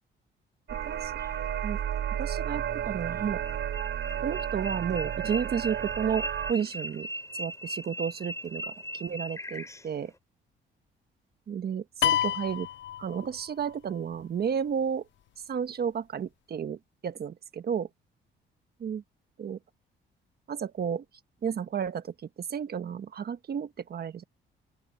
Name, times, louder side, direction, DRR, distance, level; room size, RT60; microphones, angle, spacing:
sound 1, 0.7-1.4 3.1-10.0, equal, 15° left, 3.5 m, -39 dB
sound 2, 0.7-6.5, right 10 dB, 70° right, 3.6 m, -32 dB
voice 1, 0.8-1.2 1.6-1.8 2.2-3.4 4.2-7.1 7.4-10.1 11.5-12.7 13.0-15.1 15.5-17.9 18.8-19.0 19.4-19.6 20.5-21.0 21.4-24.2, right 7 dB, 50° right, 1.5 m, -32 dB
sound 3, 12.0-13.7, left 12 dB, 70° left, 0.6 m, -28 dB
open air
cardioid pair, 90°, 20 cm